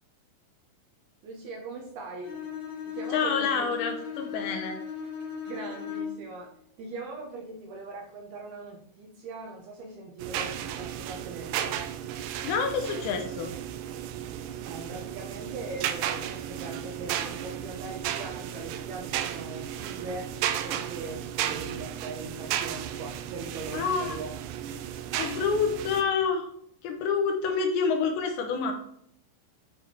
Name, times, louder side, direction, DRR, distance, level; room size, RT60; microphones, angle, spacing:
voice 1, 1.2-2.4 2.9-3.7 5.5-6.5 6.8-11.8 14.6-20.3 20.6-24.3 27.5-27.6, right 3 dB, 70° right, 0 dB, 2.6 m, -40 dB
Bowed string instrument, 2.2-6.3, left 6 dB, 50° left, 2.2 m, -37 dB
voice 2, 3.1-4.8 12.4-13.5 23.7-24.2 25.2-26.5 26.8-28.7, left 5 dB, 75° left, 4 dB, 2.9 m, -28 dB
sound 1, 10.2-26.0, right 10 dB, 85° right, 2.3 m, -34 dB
10.0 x 5.0 x 4.5 m, 0.70 s
omnidirectional pair, 5.7 m